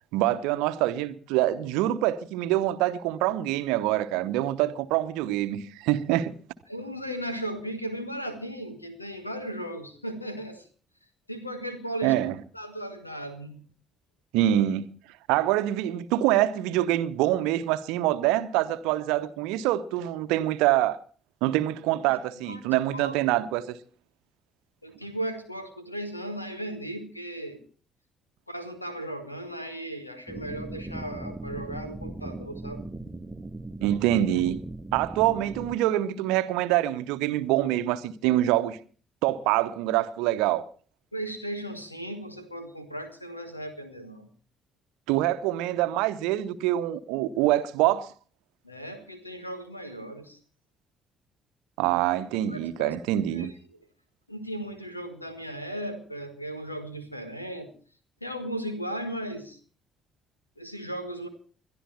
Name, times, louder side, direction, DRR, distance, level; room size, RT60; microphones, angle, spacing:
voice 1, 0.1-6.3 12.0-12.4 14.3-14.9 15.3-21.0 21.4-23.8 33.8-34.6 34.9-38.8 39.2-40.6 45.1-48.1 51.8-53.5, right 14 dB, 65° right, 0.8 m, -25 dB
voice 2, 6.7-10.7 11.3-12.2 12.5-13.6 22.0-22.2 22.4-22.6 22.9-23.2 24.8-27.6 28.5-32.8 41.1-44.3 48.6-50.4 52.5-52.9 53.3-53.8 54.3-57.7 58.2-59.6 60.6-61.3, right 1 dB, 90° left, 1.5 m, -36 dB
sound 1, 30.3-35.8, right 2 dB, 15° right, 1.0 m, -38 dB
21.5 x 12.0 x 4.3 m
figure-of-eight pair, 45°, 0 cm